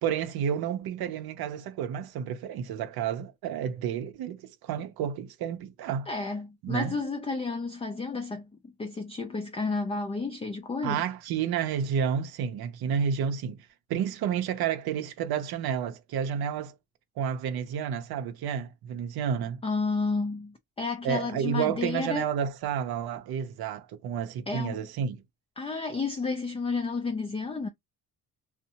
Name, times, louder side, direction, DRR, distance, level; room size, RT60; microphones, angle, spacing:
voice 1, 0.0-6.1 6.6-7.0 10.8-13.6 13.9-16.8 17.2-19.6 21.0-25.2, right 8 dB, 75° right, 0.6 m, -30 dB
voice 2, 6.1-8.5 8.8-11.0 19.6-22.3 24.5-24.8 25.6-27.7, left 4 dB, 15° left, 0.3 m, -31 dB
2.6 x 2.0 x 2.8 m
cardioid pair, 95°, 37 cm